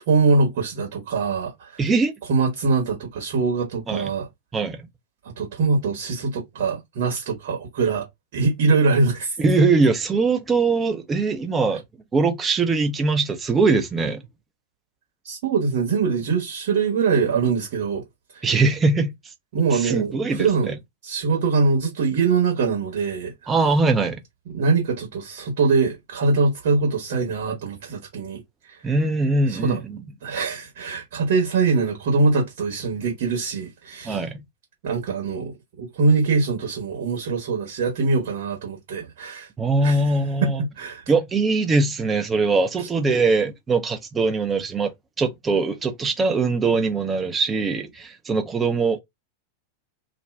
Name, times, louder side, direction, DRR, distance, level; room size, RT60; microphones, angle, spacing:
voice 1, 0.1-1.8 2.3-4.3 5.4-8.0 8.3-9.4 15.2-18.0 18.3-18.4 19.5-20.7 21.0-23.5 24.5-28.4 28.7-28.8 29.5-29.8 30.2-34.2 34.8-35.5 35.8-39.5 39.8-40.0 40.4-41.0, right 4 dB, 55° right, 1.2 m, -23 dB
voice 2, 1.8-2.1 3.9-4.1 4.5-4.9 9.4-11.8 12.1-14.2 18.4-19.1 19.7-20.8 23.5-24.2 28.8-30.0 34.0-34.4 39.6-40.6 41.1-44.9 45.2-49.0, right 3 dB, 20° right, 0.7 m, -21 dB
2.5 x 2.2 x 3.3 m
figure-of-eight pair, 90°, 0 cm